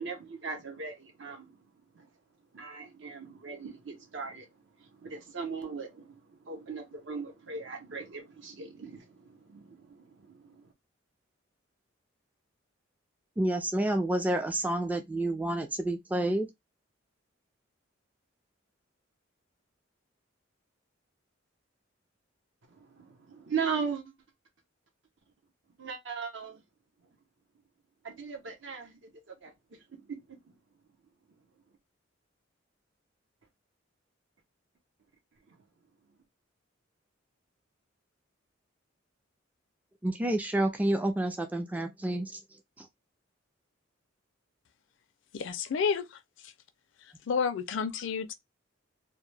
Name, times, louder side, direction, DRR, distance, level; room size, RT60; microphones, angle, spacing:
voice 1, 0.0-2.1 2.5-10.7 22.7-24.1 25.8-26.6 28.0-30.6 35.5-35.6, right 5 dB, 65° right, 0.8 m, -39 dB
voice 2, 13.4-16.5 40.0-42.4 42.8-42.9, right 1 dB, 10° right, 0.3 m, -29 dB
voice 3, 45.3-46.5 47.3-48.3, left 6 dB, 65° left, 0.4 m, -31 dB
2.2 x 2.1 x 3.2 m
head